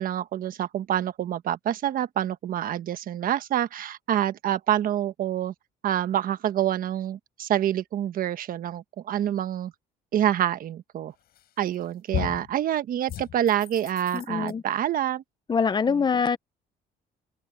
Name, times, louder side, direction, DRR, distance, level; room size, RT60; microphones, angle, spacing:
voice 1, 0.0-5.5 5.8-9.7 10.1-11.1 11.6-15.2 15.9-16.0, right 11 dB, 55° right, 1.3 m, -27 dB
sound 1, 11.3-11.7 12.1-12.5 13.1-14.5, left 12 dB, 65° left, 8.0 m, -34 dB
voice 2, 14.1-14.6 15.5-16.4, left 5 dB, 25° left, 0.9 m, -24 dB
open air
cardioid pair, 110°, 17 cm